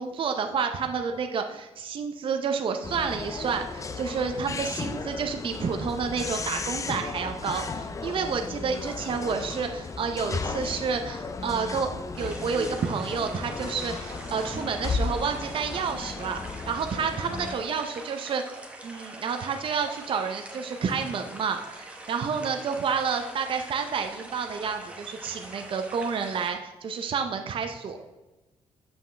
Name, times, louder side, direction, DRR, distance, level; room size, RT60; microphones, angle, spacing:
voice 1, 0.0-11.9 12.2-18.4 18.8-28.0, right 5 dB, 50° right, 5 dB, 0.6 m, -30 dB
sound 1, 2.8-17.5, left 4 dB, 30° left, 0.4 m, -35 dB
sound 2, 12.1-26.5, right 2 dB, 10° right, 1.0 m, -44 dB
7.1 x 5.4 x 3.3 m, 1.1 s
cardioid pair, 120°, 12 cm